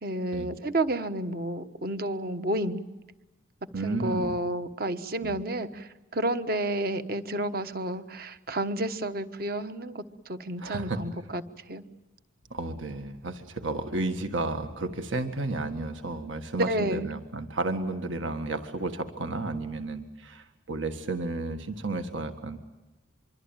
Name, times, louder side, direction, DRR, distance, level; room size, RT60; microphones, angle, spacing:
voice 1, 0.0-2.9 3.8-11.4 11.7-11.8 16.5-17.1, right 1 dB, 45° right, 10 dB, 1.3 m, -30 dB
voice 2, 3.7-4.3 5.2-5.3 10.6-11.0 12.5-22.6, right 2 dB, 70° right, 8 dB, 1.7 m, -32 dB
26.0 x 23.5 x 9.0 m, 1.1 s
head